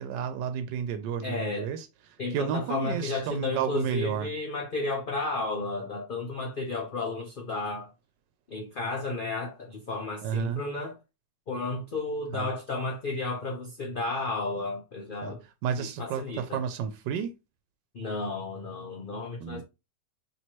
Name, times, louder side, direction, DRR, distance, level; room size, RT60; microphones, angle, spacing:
voice 1, 0.0-4.3 10.2-10.6 12.3-12.5 15.2-17.3 19.4-19.6, right 8 dB, 90° right, 1.3 m, -32 dB
voice 2, 1.2-1.7 2.2-7.9 8.5-10.9 11.5-15.4 15.8-16.6 17.9-19.6, left 3 dB, 55° left, 0.5 m, -33 dB
3.1 x 3.1 x 4.2 m
omnidirectional pair, 1.9 m